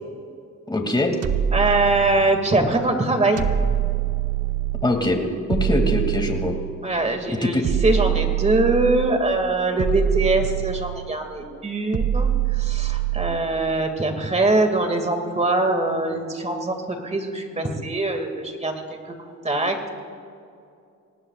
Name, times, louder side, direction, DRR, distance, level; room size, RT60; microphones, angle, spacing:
voice 1, 0.7-1.1 4.8-5.2 5.5-6.5 7.3-7.6, left 1 dB, 15° left, 4 dB, 2.5 m, -22 dB
sound 1, 1.2-2.5 3.4-5.0 5.5-6.9 7.6-9.3 9.8-11.2 11.9-13.5, right 10 dB, 55° right, 1.1 m, -24 dB
voice 2, 1.5-3.4 6.8-19.2 19.4-19.9, right 2 dB, 20° right, 5 dB, 2.3 m, -23 dB
24.0 x 18.5 x 2.5 m, 2.5 s
cardioid pair, 90°, 30 cm